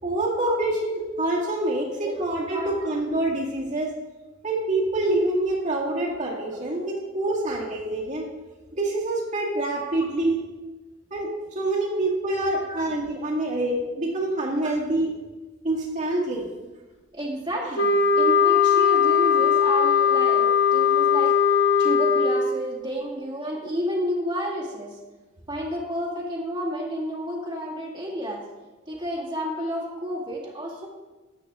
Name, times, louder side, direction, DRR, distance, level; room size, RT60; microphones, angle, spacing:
voice 1, 0.0-3.9 4.4-8.3 8.7-10.4 11.1-15.1 15.6-16.5, right 2 dB, 40° right, -4 dB, 2.0 m, -26 dB
voice 2, 17.1-21.3 21.8-25.0 25.5-28.4 28.9-30.9, equal, 25° right, -3 dB, 2.1 m, -31 dB
sound 1, 17.8-22.7, left 6 dB, 70° left, 1.4 m, -19 dB
13.5 x 8.3 x 3.7 m, 1.2 s
head